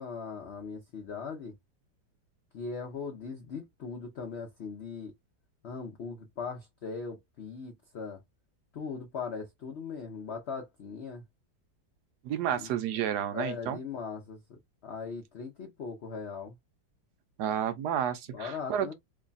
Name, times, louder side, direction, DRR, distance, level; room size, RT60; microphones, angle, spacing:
voice 1, 0.0-1.5 2.5-5.1 5.6-8.2 8.7-11.2 12.6-12.7 13.3-16.5 18.3-18.9, left 5 dB, 75° left, 0.6 m, -39 dB
voice 2, 12.2-13.8 17.4-18.9, right 9 dB, 70° right, 1.0 m, -31 dB
3.2 x 2.2 x 3.9 m
omnidirectional pair, 2.0 m